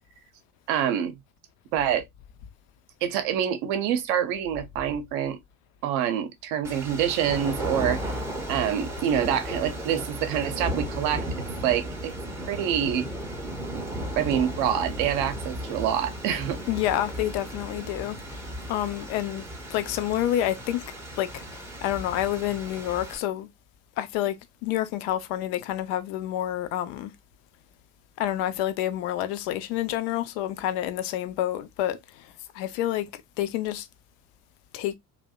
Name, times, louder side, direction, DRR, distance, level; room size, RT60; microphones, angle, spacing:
voice 1, 0.7-1.2 1.7-2.0 3.0-5.4 5.8-8.1 8.5-11.2 11.6-12.1 12.5-13.1 13.7-13.8 14.1-16.6, right 9 dB, 50° right, 0.7 m, -26 dB
sound 1, 6.6-23.2, equal, 5° right, 0.6 m, -35 dB
voice 2, 16.7-19.4 19.7-23.5 24.0-24.4 24.6-27.1 28.2-33.9 34.7-34.9, left 12 dB, 50° left, 0.5 m, -29 dB
2.6 x 2.1 x 2.2 m
figure-of-eight pair, 70°, 47 cm